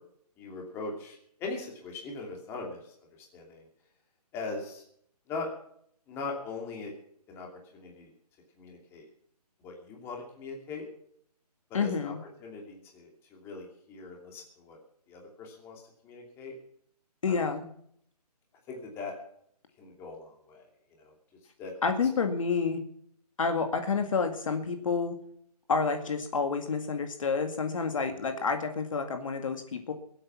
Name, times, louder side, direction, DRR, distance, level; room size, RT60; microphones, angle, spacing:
voice 1, 0.4-2.9 3.3-3.7 4.3-4.8 5.3-5.5 6.1-6.9 7.3-7.5 7.7-8.1 8.6-9.1 9.6-10.8 11.7-12.1 12.4-14.8 15.1-16.5 17.3-17.5 18.7-19.1 19.8-20.7 21.0-21.1 21.6-21.7 28.1-28.2, left 3 dB, 10° left, 0 dB, 2.7 m, -40 dB
voice 2, 11.7-12.2 17.2-17.7 21.8-22.8 23.4-25.2 25.7-29.9, left 5 dB, 55° left, 6 dB, 2.0 m, -29 dB
22.5 x 8.6 x 5.9 m, 0.66 s
hypercardioid pair, 165°, 21 cm